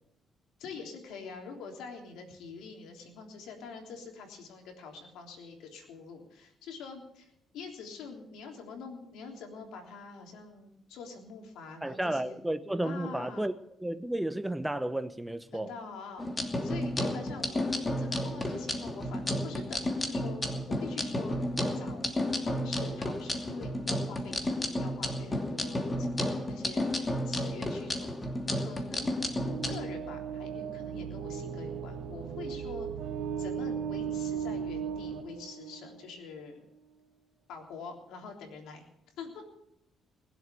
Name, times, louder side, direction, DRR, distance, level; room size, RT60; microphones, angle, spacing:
voice 1, 0.6-12.4 12.8-13.5 15.5-21.4 21.7-22.2 22.4-28.1 28.5-32.9 33.4-36.7 37.5-38.9 39.2-39.4, left 5 dB, 90° left, 3.4 m, -45 dB
voice 2, 11.8-13.5 13.8-15.7, right 1 dB, 10° right, 0.9 m, -32 dB
sound 1, 16.2-29.8, left 1 dB, 25° left, 2.7 m, -32 dB
sound 2, 29.2-36.2, right 7 dB, 85° right, 1.3 m, -37 dB
20.5 x 7.9 x 7.0 m
cardioid pair, 90°, 0 cm